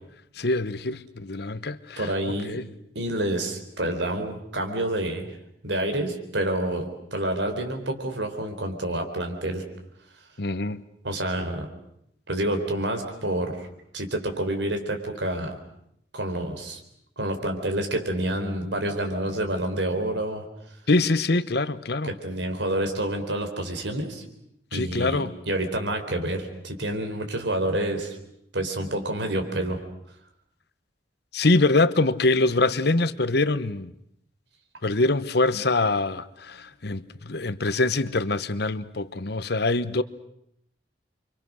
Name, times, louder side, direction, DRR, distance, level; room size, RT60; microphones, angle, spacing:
voice 1, 0.4-2.1 2.4-2.7 10.4-10.8 20.9-22.1 24.7-25.3 31.3-33.9 34.8-40.0, left 2 dB, 65° left, 1.1 m, -24 dB
voice 2, 2.0-2.6 2.9-5.3 5.6-9.6 11.0-11.7 12.3-13.7 13.9-15.6 16.1-16.8 17.2-20.4 22.0-24.2 24.7-28.2 28.5-29.8, right 1 dB, 75° right, 4.2 m, -28 dB
29.5 x 25.0 x 6.4 m
head